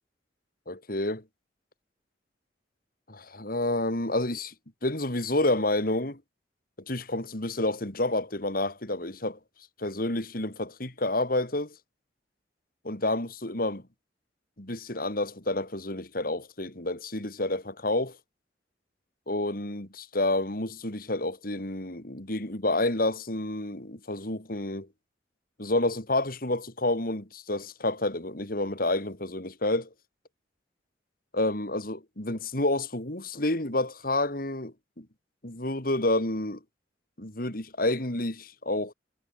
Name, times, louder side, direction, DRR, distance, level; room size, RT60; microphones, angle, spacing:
voice 1, 0.7-1.2 3.1-4.5 4.8-6.2 6.9-9.4 9.8-11.8 12.8-13.8 14.6-18.2 19.3-24.9 25.6-29.9 31.3-35.1 35.4-36.6 37.2-38.9, left 2 dB, 50° left, 3.4 m, -29 dB
head